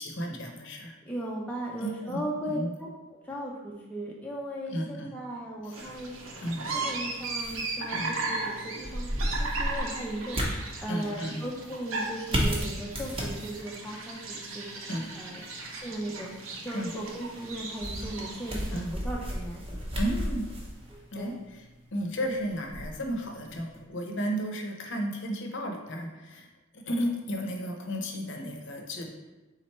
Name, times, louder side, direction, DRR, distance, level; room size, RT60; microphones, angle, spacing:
voice 1, 0.0-1.0 1.8-2.7 4.7-5.1 5.6-5.8 6.4-6.7 7.9-8.1 9.3-9.5 10.9-11.4 14.9-15.1 15.4-15.5 16.7-16.9 18.7-19.0 20.0-20.5 21.1-21.6 21.9-26.5 26.7-29.1, equal, 55° left, 2 dB, 0.7 m, -33 dB
voice 2, 1.0-2.9 3.2-6.2 6.7-9.1 9.4-14.9 15.2-15.4 15.8-19.6 20.9-21.3, right 1 dB, 5° left, -3 dB, 0.4 m, -37 dB
sound 1, 5.7-18.8, right 3 dB, 65° right, 0.7 m, -37 dB
sound 2, 5.8-23.8, equal, 25° right, 0.7 m, -36 dB
3.9 x 3.2 x 4.3 m, 1.1 s
head